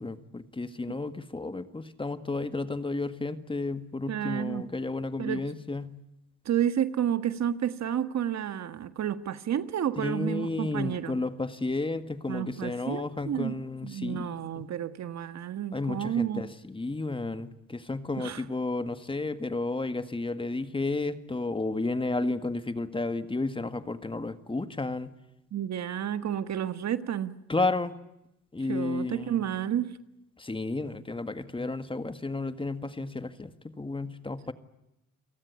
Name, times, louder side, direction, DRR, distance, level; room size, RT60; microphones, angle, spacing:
voice 1, 0.0-5.9 10.0-14.6 15.7-25.1 27.5-27.9 28.5-29.4 30.4-34.5, left 2 dB, 15° left, 11 dB, 1.8 m, -32 dB
voice 2, 4.1-4.7 5.2-5.4 6.4-11.2 12.3-16.5 18.2-18.4 25.5-27.3 28.7-30.0, right 10 dB, 60° right, 11 dB, 1.6 m, -31 dB
29.0 x 18.5 x 8.4 m, 0.88 s
cardioid pair, 90°, 30 cm